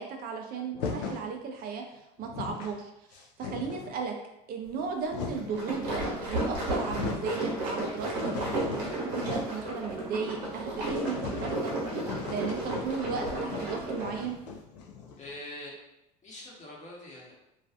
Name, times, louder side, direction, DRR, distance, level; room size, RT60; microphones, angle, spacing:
voice 1, 0.0-4.1 4.5-14.4, right 5 dB, 45° right, 3 dB, 0.4 m, -36 dB
sound 1, 0.7-1.3 1.9-2.0 2.2-2.8 3.1-4.0 4.7-5.6 6.4-6.5 6.7-7.3 7.8-9.7 10.0-10.1 10.4-10.5 10.9-15.4, left 5 dB, 80° left, 0.4 m, -39 dB
sound 2, 5.3-14.2, right 1 dB, 75° right, 0.8 m, -33 dB
voice 2, 15.2-15.8 16.2-17.3, left 1 dB, 35° left, -4 dB, 1.0 m, -43 dB
2.4 x 2.2 x 2.4 m, 0.86 s
hypercardioid pair, 70°, 21 cm